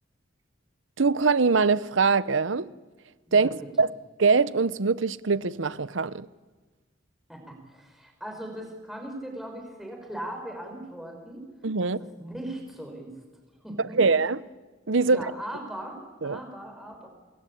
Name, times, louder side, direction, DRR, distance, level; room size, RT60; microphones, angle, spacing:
voice 1, 1.0-2.7 3.3-3.9 4.2-6.3 11.6-12.0 13.9-14.4 14.9-15.3 16.2-16.4, right 4 dB, 85° right, 0.8 m, -23 dB
voice 2, 3.3-3.7 7.3-11.5 12.2-13.1 13.6-14.0 15.0-17.1, right 1 dB, ahead, 5.5 m, -39 dB
28.0 x 21.0 x 8.6 m
head